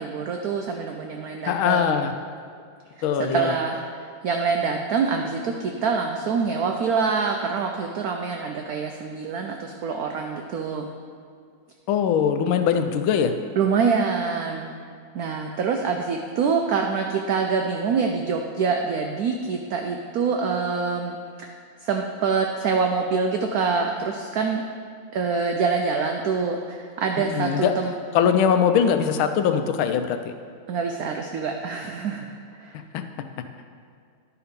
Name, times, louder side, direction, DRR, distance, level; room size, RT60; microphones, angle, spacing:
voice 1, 0.0-2.1 3.2-3.8 4.2-10.9 13.6-14.7 15.1-21.5 21.8-24.6 25.1-27.9 30.7-32.3 32.6-32.8, right 5 dB, 85° right, 3 dB, 0.8 m, -25 dB
voice 2, 1.5-2.1 3.0-3.5 11.9-13.3 27.2-27.7 28.1-30.3 32.9-33.0, left 7 dB, 85° left, 8 dB, 1.4 m, -21 dB
10.5 x 4.8 x 5.1 m, 2.2 s
omnidirectional pair, 2.2 m